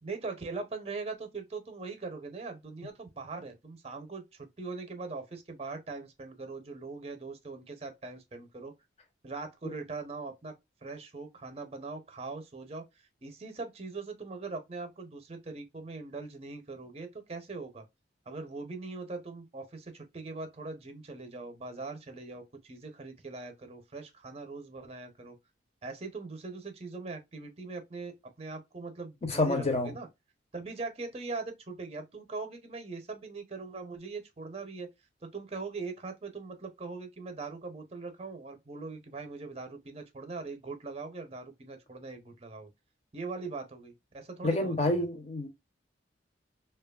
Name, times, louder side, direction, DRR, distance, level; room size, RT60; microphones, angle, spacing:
voice 1, 0.0-8.7 9.2-10.5 10.8-12.8 13.2-17.9 18.3-25.4 25.8-30.1 30.5-34.9 35.2-42.7 43.1-45.0, right 3 dB, 35° right, 0.6 m, -41 dB
voice 2, 29.2-29.9 44.4-45.5, left 2 dB, 35° left, 0.7 m, -28 dB
2.9 x 2.3 x 2.2 m
head